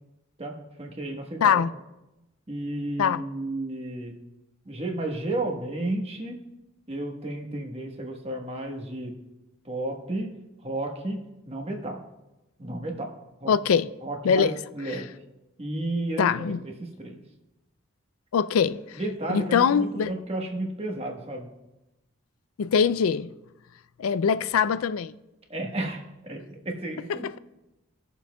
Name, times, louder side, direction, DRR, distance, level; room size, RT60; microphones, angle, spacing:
voice 1, 0.4-1.7 2.5-4.2 4.6-6.4 6.9-9.1 9.6-10.3 10.6-12.0 12.6-13.1 13.4-13.5 14.0-15.1 15.6-17.2 18.9-21.5 25.5-27.4, right 1 dB, 30° right, 1.2 m, -32 dB
voice 2, 13.5-13.9 14.2-14.5 16.2-16.6 18.3-19.0 19.3-20.1 22.6-23.3 24.0-25.1, left 7 dB, 90° left, 0.4 m, -22 dB
20.0 x 7.0 x 2.3 m
head